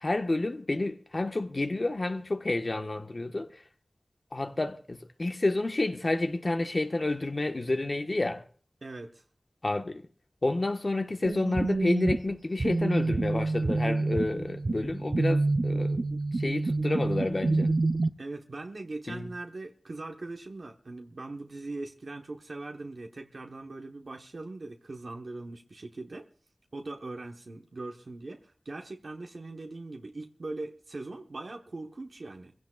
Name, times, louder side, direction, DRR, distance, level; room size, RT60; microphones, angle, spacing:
voice 1, 0.0-3.6 4.3-8.4 9.6-10.1 10.4-16.0 16.3-17.7 19.1-19.3, left 2 dB, 55° left, 1.3 m, -30 dB
voice 2, 8.8-9.2 18.2-26.3 26.7-32.5, right 2 dB, 80° right, 1.1 m, -41 dB
sound 1, 11.2-18.1, right 3 dB, 60° right, 0.6 m, -28 dB
26.0 x 16.0 x 2.4 m
wide cardioid pair, 50°, 0 cm